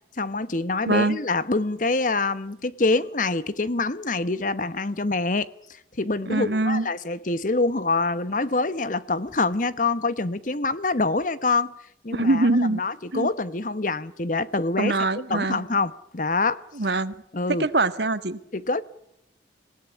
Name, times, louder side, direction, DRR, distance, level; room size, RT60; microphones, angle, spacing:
voice 1, 0.2-11.7 12.0-14.9 15.3-16.6 17.3-17.7 18.5-18.8, left 3 dB, 45° left, 1.0 m, -25 dB
voice 2, 0.9-1.2 6.3-6.9 12.1-12.8 13.1-13.3 14.8-15.6 16.8-17.1 17.6-18.4, right 2 dB, 65° right, 1.6 m, -23 dB
27.5 x 18.0 x 10.0 m
head